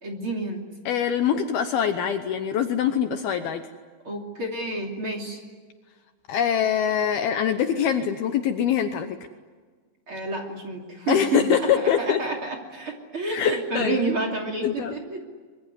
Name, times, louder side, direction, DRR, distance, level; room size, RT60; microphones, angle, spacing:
voice 1, 0.0-0.6 4.0-5.4 10.1-15.2, right 2 dB, 35° right, 3 dB, 3.1 m, -29 dB
voice 2, 0.9-3.6 6.3-9.2 11.1-12.2 13.3-14.0 14.6-15.2, left 8 dB, 70° left, 7 dB, 2.5 m, -24 dB
25.5 x 23.0 x 9.8 m, 1.5 s
omnidirectional pair, 5.2 m